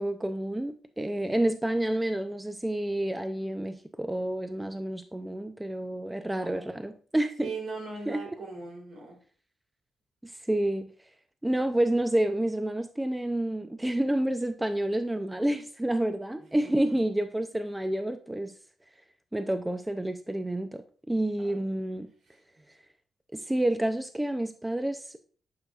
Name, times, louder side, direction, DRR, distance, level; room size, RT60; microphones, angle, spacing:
voice 1, 0.0-7.5 8.1-8.4 10.2-10.9 11.4-18.5 19.3-20.8 21.1-22.1 23.3-25.2, right 1 dB, 10° right, 0.4 m, -29 dB
voice 2, 6.3-6.8 7.4-9.2 16.5-16.9 21.5-21.6, right 4 dB, 65° right, 3.1 m, -40 dB
9.4 x 5.4 x 2.3 m
cardioid pair, 95°, 0 cm